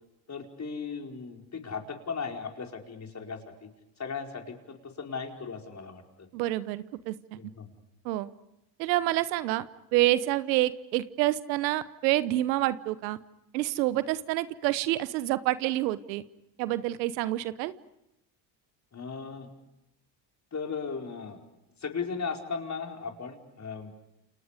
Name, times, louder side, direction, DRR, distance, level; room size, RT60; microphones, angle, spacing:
voice 1, 0.3-3.7 4.0-6.3 7.4-7.7 18.9-19.5 20.5-21.4 21.8-23.9, left 5 dB, 35° left, 2 dB, 5.1 m, -37 dB
voice 2, 6.3-7.4 8.0-8.3 8.8-13.2 13.5-16.2 16.6-17.7, right 15 dB, 85° right, 16 dB, 1.1 m, -28 dB
29.5 x 29.0 x 5.1 m, 0.87 s
hypercardioid pair, 65°, 50 cm